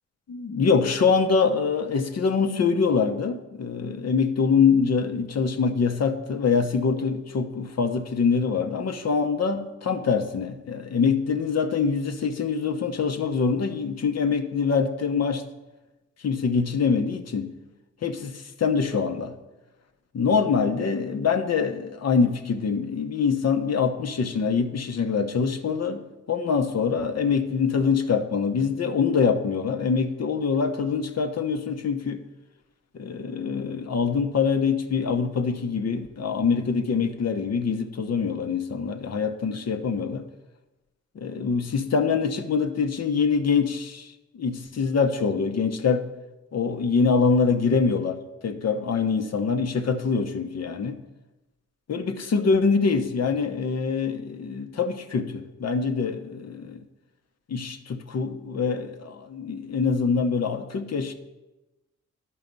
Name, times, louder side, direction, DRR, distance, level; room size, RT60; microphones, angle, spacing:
voice 1, 0.3-15.4 16.2-17.5 18.0-19.4 20.1-26.0 26.3-32.2 32.9-40.3 41.1-46.1 46.5-51.0 51.9-56.8 57.5-61.1, left 5 dB, 60° left, 1.0 m, -24 dB
11.0 x 5.7 x 5.3 m
cardioid pair, 70°, 30 cm